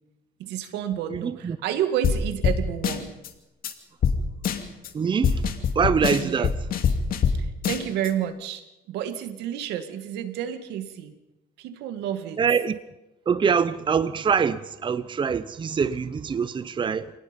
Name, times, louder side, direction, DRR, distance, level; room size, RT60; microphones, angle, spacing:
voice 1, 0.4-3.2 6.2-6.5 7.3-11.1 11.6-12.4, right 10 dB, 90° right, 2.0 m, -30 dB
voice 2, 1.1-1.6 4.9-5.4 5.8-6.5 12.4-12.8 13.3-17.1, right 6 dB, 30° right, 0.8 m, -24 dB
sound 1, 2.0-2.2 2.4-2.6 2.8-3.3 3.6-3.7 4.0-4.2 4.4-4.9 5.2-7.4 7.6-8.1, left 7 dB, 60° left, 2.4 m, -23 dB
27.5 x 19.0 x 5.3 m
cardioid pair, 110°, 17 cm